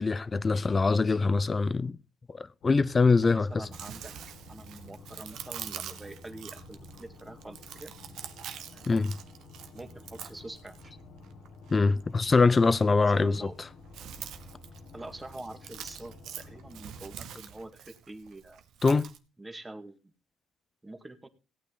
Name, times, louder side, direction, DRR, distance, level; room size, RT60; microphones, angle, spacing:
voice 1, 0.0-2.0 2.3-3.7 8.9-9.2 11.7-13.7 18.8-19.1, left 4 dB, 30° left, 0.7 m, -24 dB
sound 1, 2.6-17.8, left 3 dB, 70° left, 2.0 m, -51 dB
voice 2, 3.2-4.1 4.5-7.9 8.7-9.1 9.7-10.9 12.9-13.6 14.9-18.6 19.4-20.1 20.8-21.3, right 2 dB, 15° right, 2.0 m, -45 dB
Chewing mastication, 3.5-19.2, right 9 dB, 75° right, 1.3 m, -46 dB
17.0 x 9.2 x 3.9 m
cardioid pair, 85°, 0 cm